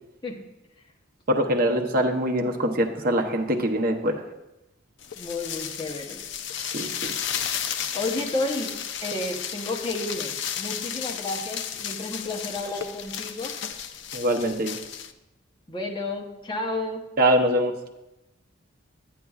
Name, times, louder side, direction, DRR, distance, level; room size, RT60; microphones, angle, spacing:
voice 1, 1.3-4.2 6.7-7.1 14.1-14.7 17.2-17.7, right 1 dB, 45° right, 2 dB, 0.7 m, -23 dB
sound 1, 5.0-15.1, left 8 dB, 60° left, 0.4 m, -33 dB
voice 2, 5.2-6.2 7.9-8.7 9.0-13.6 15.7-17.0, left 2 dB, 25° left, 1 dB, 0.8 m, -31 dB
9.7 x 9.3 x 2.4 m, 0.95 s
head